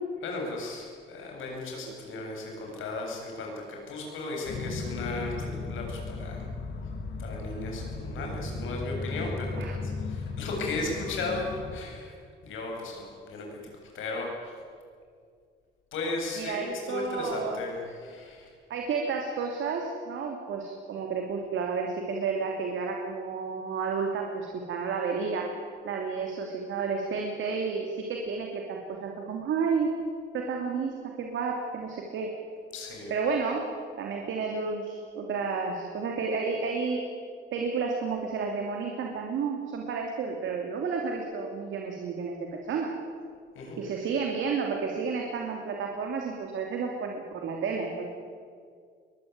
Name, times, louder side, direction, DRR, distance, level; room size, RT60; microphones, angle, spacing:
voice 1, 0.2-6.5 7.2-12.1 12.4-13.6 13.9-14.6 15.9-18.5 32.7-33.1 43.6-43.8, left 2 dB, 80° left, 0 dB, 7.7 m, -36 dB
sound 1, 4.5-11.8, left 3 dB, 60° left, 2.8 m, -36 dB
voice 2, 16.4-17.6 18.7-25.5 25.8-29.9 30.3-32.3 33.1-33.7 34.0-37.0 37.5-42.9 43.8-48.1, right 5 dB, 75° right, 1 dB, 2.9 m, -31 dB
22.5 x 20.0 x 9.5 m, 2.2 s
cardioid pair, 90°, 20 cm